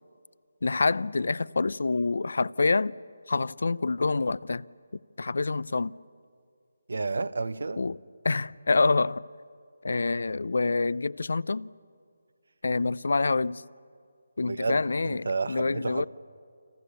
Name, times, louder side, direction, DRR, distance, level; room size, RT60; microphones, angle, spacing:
voice 1, 0.6-3.0 3.3-4.7 5.2-5.9 7.8-8.0 8.2-9.2 9.8-11.7 12.6-13.6 14.4-16.1, left 3 dB, 70° left, 0.6 m, -26 dB
voice 2, 6.9-7.8 14.4-16.1, right 3 dB, 75° right, 1.1 m, -31 dB
29.5 x 26.0 x 6.9 m
figure-of-eight pair, 160°, 0 cm